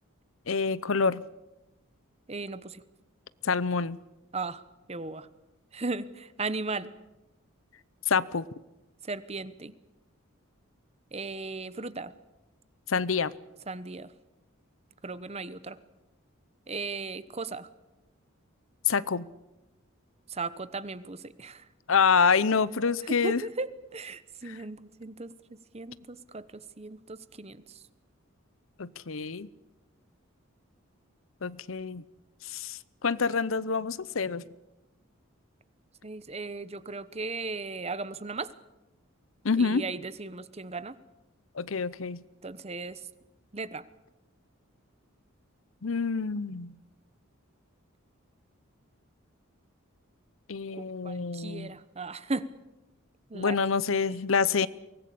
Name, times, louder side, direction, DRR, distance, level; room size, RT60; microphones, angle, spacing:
voice 1, 0.5-1.2 3.4-4.0 8.1-8.5 12.9-13.3 18.9-19.3 21.9-23.4 24.5-24.6 28.8-29.5 31.4-32.0 32.4-34.4 39.4-39.8 41.5-42.2 45.8-46.8 50.5-51.7 53.3-54.7, left 5 dB, 70° left, 18 dB, 0.7 m, -27 dB
voice 2, 2.3-2.8 4.3-4.6 4.9-5.3 5.7-6.9 9.0-9.7 11.1-12.1 13.7-14.1 15.0-15.8 16.7-17.7 20.3-21.7 23.0-25.3 25.7-27.8 36.0-38.5 39.6-41.0 42.4-43.0 43.5-43.8 50.7-52.5 53.3-53.6 53.9-54.0, right 3 dB, 30° right, 15 dB, 1.0 m, -36 dB
23.5 x 19.0 x 8.5 m, 1.0 s
head